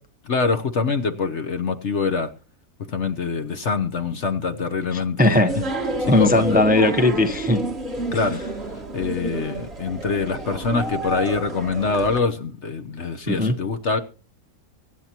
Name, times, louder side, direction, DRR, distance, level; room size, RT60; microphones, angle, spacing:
voice 1, 0.2-2.3 2.9-5.6 6.0-6.6 8.1-8.4 8.9-14.0, left 4 dB, 50° left, 1.2 m, -25 dB
voice 2, 4.9-5.5 6.1-7.6 13.3-13.5, left 2 dB, 5° right, 0.8 m, -18 dB
sound 1, 5.5-12.2, right 1 dB, 40° right, 3.0 m, -29 dB
24.5 x 9.8 x 2.9 m
omnidirectional pair, 1.7 m